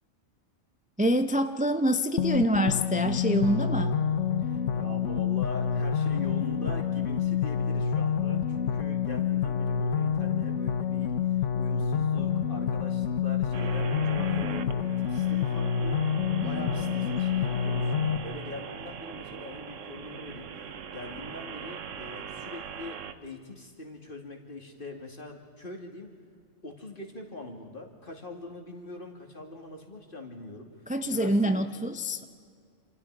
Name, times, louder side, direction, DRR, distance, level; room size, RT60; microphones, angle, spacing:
voice 1, 1.0-4.0 16.4-16.9 30.9-32.3, equal, 10° right, 8 dB, 0.5 m, -26 dB
sound 1, 2.2-18.2, left 7 dB, 75° left, 1.2 m, -28 dB
voice 2, 4.4-20.6 20.9-26.1 26.6-30.7 31.0-31.8, left 2 dB, 45° left, 2 dB, 2.8 m, -43 dB
sound 2, 13.5-23.1, right 7 dB, 80° right, 1.3 m, -41 dB
28.0 x 28.0 x 4.9 m, 2.2 s
omnidirectional pair, 1.3 m